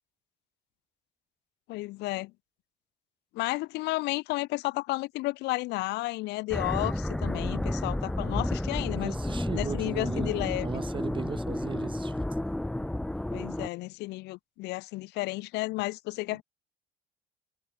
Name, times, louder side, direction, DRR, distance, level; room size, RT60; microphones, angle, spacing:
voice 1, 1.7-2.3 3.4-9.2 9.5-10.7 13.3-16.4, left 20 dB, 90° left, 1.8 m, -32 dB
sound 1, 6.5-13.7, left 1 dB, 5° left, 0.3 m, -31 dB
voice 2, 9.0-12.2, right 5 dB, 30° right, 2.4 m, -37 dB
cardioid pair, 110°, 17 cm